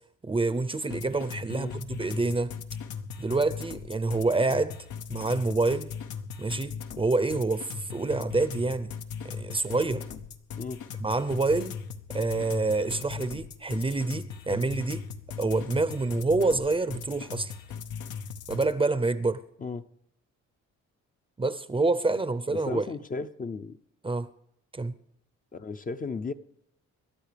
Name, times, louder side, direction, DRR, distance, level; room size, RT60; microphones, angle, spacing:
voice 1, 0.2-2.5 3.2-4.8 5.1-5.9 6.4-8.9 9.2-10.0 11.0-11.7 12.1-15.1 15.4-17.5 18.5-19.4 21.4-22.9 24.0-24.3 24.7-24.9, right 3 dB, 20° right, 0.6 m, -27 dB
sound 1, 0.9-18.7, left 7 dB, 80° left, 0.9 m, -39 dB
voice 2, 22.5-23.8 25.5-26.3, left 4 dB, 30° left, 0.6 m, -35 dB
27.0 x 11.5 x 3.4 m
cardioid pair, 90°, 30 cm